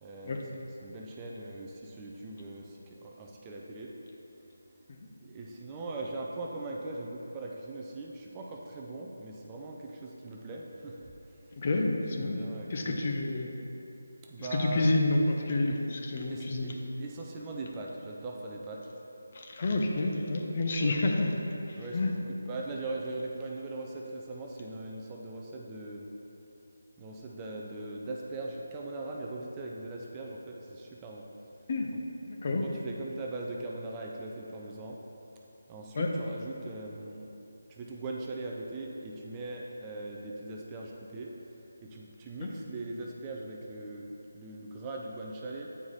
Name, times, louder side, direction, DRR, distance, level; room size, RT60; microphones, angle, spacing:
voice 1, 0.0-3.9 5.2-11.4 12.2-13.0 14.2-14.9 16.3-16.7 17.0-18.9 20.8-21.0 21.8-26.1 27.0-31.3 31.9-32.0 32.5-35.0 35.7-37.3 37.7-45.7, right 2 dB, 15° right, -1 dB, 0.5 m, -40 dB
voice 2, 11.6-12.4 12.7-13.5 14.4-16.7 19.3-22.1 31.7-31.9 32.3-32.6 35.9-36.1 42.4-42.5, left 2 dB, 40° left, 1 dB, 0.7 m, -29 dB
8.5 x 4.7 x 4.1 m, 3.0 s
figure-of-eight pair, 160°, 0 cm